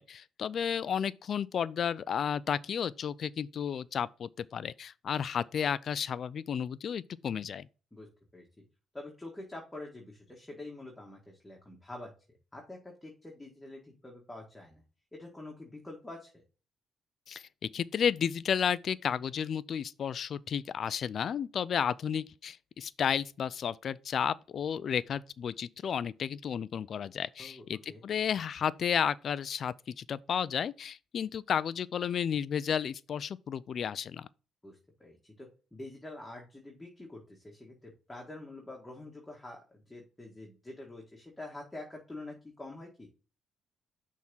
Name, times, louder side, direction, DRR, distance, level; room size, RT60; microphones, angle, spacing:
voice 1, 0.0-7.7 17.3-34.3, left 8 dB, 55° left, 0.4 m, -32 dB
voice 2, 8.9-12.1 12.5-14.8 15.1-16.3 27.4-28.0 34.6-43.1, left 2 dB, 10° left, 1.8 m, -46 dB
6.2 x 3.6 x 5.5 m
cardioid pair, 80°, 0 cm